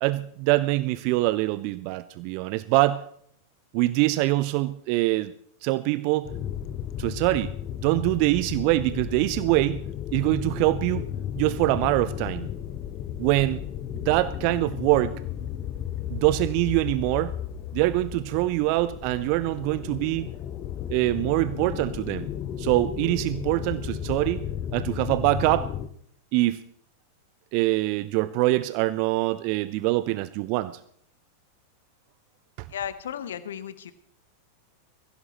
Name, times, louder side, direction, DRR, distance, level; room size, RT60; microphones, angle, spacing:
voice 1, 0.0-3.0 3.7-5.3 5.6-6.3 7.0-7.5 7.8-9.8 10.1-11.1 11.4-12.5 13.2-13.6 14.1-15.2 16.1-17.3 17.7-20.3 20.9-22.3 22.6-24.4 24.7-25.7 26.3-26.6 27.5-30.8 32.6-32.7, right 18 dB, 45° right, 16 dB, 0.5 m, -24 dB
sound 1, 6.2-25.9, left 10 dB, 35° left, 0.9 m, -34 dB
voice 2, 32.7-33.9, left 9 dB, 60° left, 14 dB, 0.9 m, -34 dB
22.5 x 15.5 x 3.1 m, 0.67 s
figure-of-eight pair, 90°, 0 cm